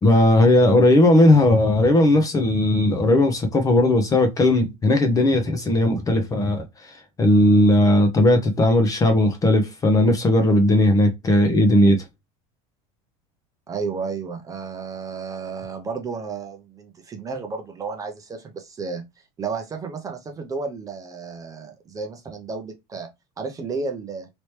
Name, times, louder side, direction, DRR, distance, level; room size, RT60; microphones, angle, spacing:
voice 1, 0.0-6.6 7.2-12.0, left 1 dB, 20° left, 0.7 m, -17 dB
voice 2, 13.7-19.0 19.4-23.1 23.4-24.3, right 4 dB, 20° right, 0.6 m, -32 dB
3.1 x 2.9 x 3.1 m
supercardioid pair, 145°, 17 cm